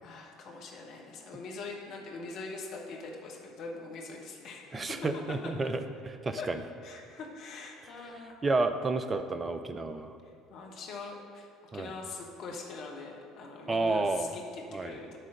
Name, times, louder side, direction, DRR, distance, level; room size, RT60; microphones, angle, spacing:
voice 1, 0.0-5.0 5.3-5.4 6.4-6.5 6.8-8.4 10.5-11.5 11.7-15.2, left 3 dB, 50° left, 0 dB, 1.3 m, -43 dB
voice 2, 4.7-6.6 8.4-10.2 11.7-11.9 13.7-14.4 14.7-15.0, right 3 dB, 25° right, 9 dB, 0.6 m, -31 dB
11.0 x 3.8 x 6.5 m, 2.6 s
figure-of-eight pair, 60°, 0 cm